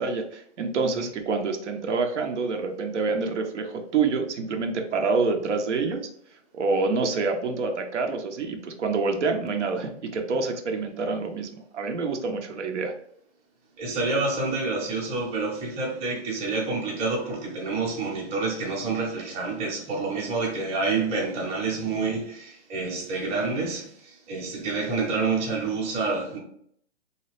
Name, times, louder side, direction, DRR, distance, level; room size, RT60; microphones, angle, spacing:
voice 1, 0.0-6.1 6.5-12.9, right 4 dB, 75° right, 0.7 m, -27 dB
voice 2, 13.8-26.4, right 3 dB, 15° right, 0.7 m, -28 dB
2.7 x 2.3 x 3.2 m
hypercardioid pair, 130°, 35 cm